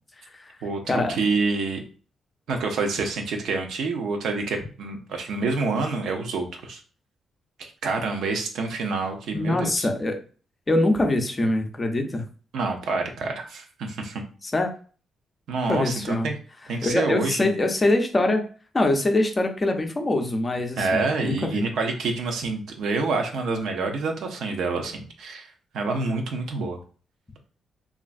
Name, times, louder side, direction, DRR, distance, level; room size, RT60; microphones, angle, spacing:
voice 1, 0.6-1.8 2.5-6.8 7.6-9.9 12.5-14.2 15.5-16.3 16.7-17.4 20.8-26.8, right 3 dB, 75° right, 4 dB, 0.6 m, -27 dB
voice 2, 9.3-10.2 10.7-12.2 14.4-14.7 15.7-16.3 16.8-18.4 18.7-21.6, left 2 dB, 20° left, 4 dB, 0.5 m, -23 dB
3.1 x 2.5 x 2.4 m, 0.40 s
cardioid pair, 125°, 0 cm